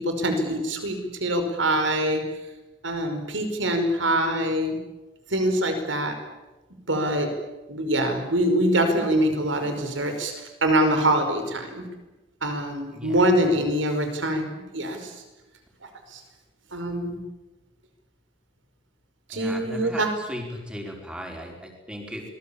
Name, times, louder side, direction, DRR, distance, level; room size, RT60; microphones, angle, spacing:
voice 1, 0.0-2.2 2.8-4.8 5.3-6.2 6.9-7.3 7.7-10.3 10.6-11.9 12.4-15.1 16.1-16.2 16.7-17.2 19.3-20.1, right 1 dB, 80° right, 6 dB, 5.2 m, -24 dB
voice 2, 12.9-13.7 19.3-22.2, equal, 5° right, 2 dB, 4.9 m, -37 dB
26.0 x 21.0 x 8.7 m, 1.1 s
head